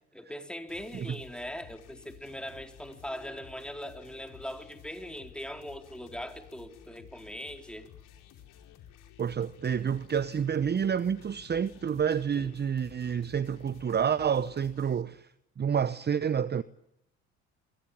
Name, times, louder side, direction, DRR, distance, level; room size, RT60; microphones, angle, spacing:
voice 1, 0.1-7.9 12.3-12.5, equal, 5° left, 4.2 m, -41 dB
sound 1, 0.7-15.0, left 10 dB, 65° left, 4.7 m, -54 dB
voice 2, 9.2-15.3 15.6-16.6, right 7 dB, 30° right, 0.9 m, -29 dB
28.5 x 23.5 x 7.3 m
hypercardioid pair, 55°, 34 cm